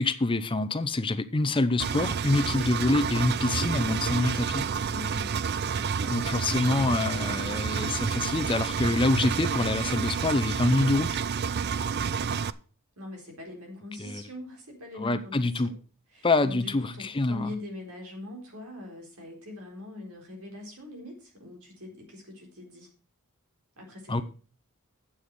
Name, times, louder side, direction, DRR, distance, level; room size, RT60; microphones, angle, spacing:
voice 1, 0.0-4.7 6.1-11.1 14.0-14.2 15.0-15.7 16.2-17.5 24.1-24.2, left 2 dB, 25° left, 0.6 m, -26 dB
Engine, 1.8-12.5, right 6 dB, 45° right, 0.4 m, -29 dB
voice 2, 4.9-7.0 11.9-12.5 13.0-15.8 16.1-22.9 23.8-24.2, left 2 dB, 80° right, 4.0 m, -43 dB
8.6 x 7.4 x 6.1 m
head